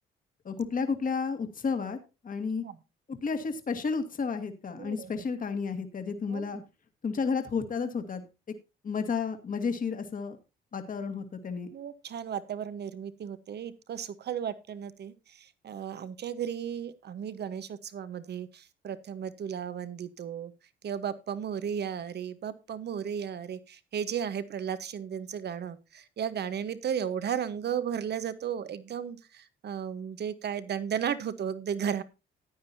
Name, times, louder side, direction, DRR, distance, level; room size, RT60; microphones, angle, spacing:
voice 1, 0.4-2.0 2.2-2.6 3.2-6.6 7.0-8.3 8.8-10.4 10.7-11.7, left 5 dB, 45° left, 7 dB, 1.9 m, -31 dB
voice 2, 4.8-5.2 6.3-6.6 11.7-20.5 20.8-32.0, right 8 dB, 55° right, 14 dB, 1.1 m, -35 dB
15.0 x 9.7 x 2.7 m, 0.27 s
cardioid pair, 90°, 20 cm